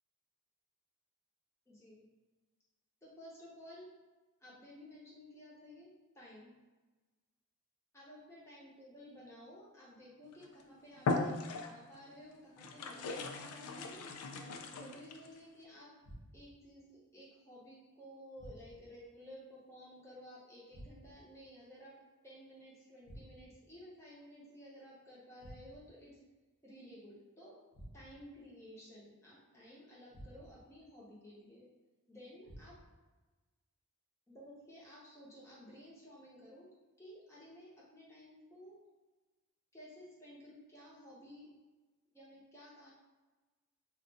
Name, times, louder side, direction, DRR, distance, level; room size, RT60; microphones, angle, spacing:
voice 1, 1.7-2.1 3.0-3.9 4.4-5.9 6.1-6.5 7.9-14.1 14.7-15.9 16.3-26.2 26.6-27.6 27.9-31.7 32.1-32.8 34.3-36.7 37.0-38.8 39.7-41.5 42.1-42.9, equal, 15° left, -7 dB, 0.8 m, -54 dB
sound 1, 10.3-10.5 11.0-12.0 12.6-15.3, left 3 dB, 85° left, 0.3 m, -38 dB
sound 2, 16.0-16.7 18.4-19.0 20.7-21.3 23.0-23.7 25.4-26.0 27.7-28.4 30.1-30.7 32.4-33.1, equal, 45° left, 0.7 m, -54 dB
2.5 x 2.2 x 3.9 m, 1.2 s
head